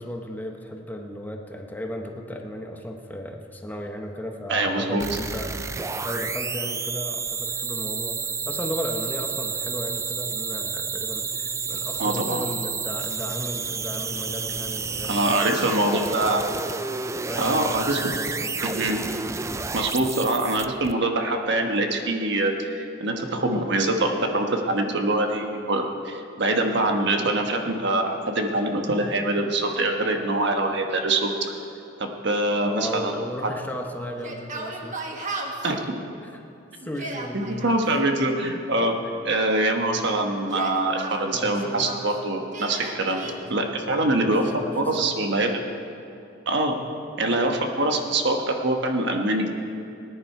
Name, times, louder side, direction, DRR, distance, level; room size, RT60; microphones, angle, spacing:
voice 1, 0.0-16.7 17.2-17.8 18.1-18.8 32.6-35.1 36.2-36.4 36.8-37.7 41.3-41.9 43.2-43.6 44.0-45.3, equal, 10° left, 3 dB, 0.8 m, -35 dB
voice 2, 4.5-5.0 12.0-12.4 15.1-16.5 17.4-18.1 18.6-19.0 19.7-31.3 32.0-33.2 35.6-36.0 37.3-38.9 39.2-45.5 46.5-46.8 47.2-49.5, right 2 dB, 65° right, 3 dB, 1.3 m, -24 dB
sound 1, 5.0-20.9, right 5 dB, 15° right, 0.3 m, -30 dB
Yell, 34.1-35.7 36.8-37.8 40.4-42.1 42.5-43.3, right 2 dB, 40° right, 1.4 m, -35 dB
19.5 x 10.5 x 4.6 m, 2.8 s
head